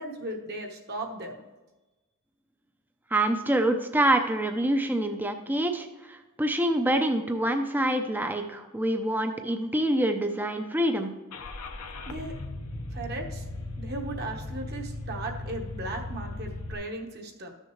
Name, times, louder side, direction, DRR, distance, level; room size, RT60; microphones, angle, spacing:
voice 1, 0.0-1.4 12.1-12.4 12.9-13.4 13.8-17.5, right 2 dB, 45° right, 2 dB, 1.2 m, -37 dB
voice 2, 3.1-11.1, right 1 dB, 10° right, 6 dB, 0.5 m, -26 dB
Car / Engine starting, 11.3-16.7, left 2 dB, 85° left, 0.8 m, -37 dB
13.0 x 6.5 x 3.1 m, 1.1 s
head